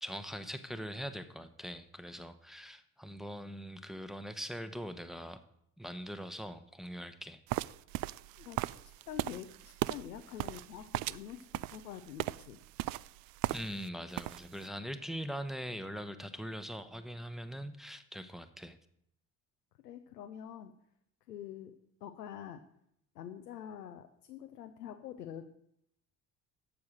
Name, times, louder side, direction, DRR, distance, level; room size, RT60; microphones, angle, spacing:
voice 1, 0.0-5.4 5.8-7.4 13.5-18.8, equal, ahead, 9 dB, 1.0 m, -42 dB
sound 1, 7.5-13.9 14.1-14.6, right 18 dB, 50° right, 0.4 m, -37 dB
voice 2, 8.3-12.6 19.8-20.7 21.3-21.7 22.0-22.6 23.1-25.4, left 9 dB, 85° left, 7 dB, 0.7 m, -46 dB
9.9 x 7.0 x 6.4 m, 0.75 s
figure-of-eight pair, 55°, 47 cm